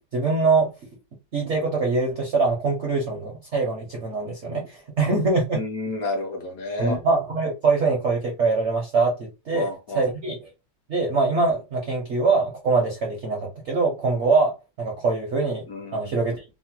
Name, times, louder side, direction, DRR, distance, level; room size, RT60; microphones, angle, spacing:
voice 1, 0.1-0.7 1.3-5.6 6.8-10.5 10.9-15.6 15.9-16.4, right 3 dB, 65° right, 0.7 m, -23 dB
voice 2, 5.5-7.0 9.5-10.0 15.7-16.2, left 2 dB, 70° left, 0.9 m, -30 dB
3.0 x 2.1 x 2.8 m
omnidirectional pair, 1.9 m